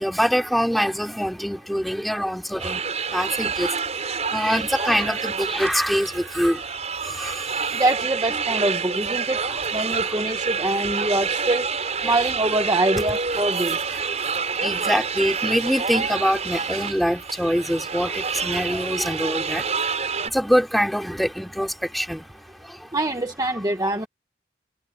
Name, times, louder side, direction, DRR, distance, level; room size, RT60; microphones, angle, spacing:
voice 1, 0.0-2.8 3.1-3.8 4.3-6.6 7.0-7.4 9.4-9.5 12.0-12.1 14.0-19.9 20.2-22.9, equal, ahead, 4.1 m, -24 dB
sound 1, 2.6-20.3, right 5 dB, 40° right, 8.0 m, -28 dB
voice 2, 7.7-9.4 9.7-11.7 12.0-13.8 22.9-24.1, right 2 dB, 20° right, 1.3 m, -24 dB
head